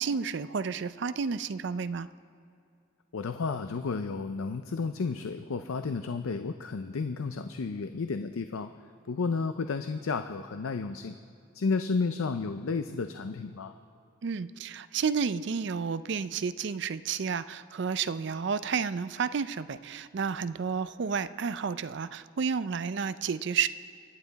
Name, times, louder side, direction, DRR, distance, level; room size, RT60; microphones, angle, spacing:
voice 1, 0.0-2.1 14.2-23.7, right 6 dB, 55° right, 14 dB, 0.4 m, -31 dB
voice 2, 3.1-8.7 9.1-11.2 11.5-13.7, left 4 dB, 85° left, 8 dB, 0.5 m, -32 dB
26.0 x 9.6 x 4.0 m, 2.5 s
head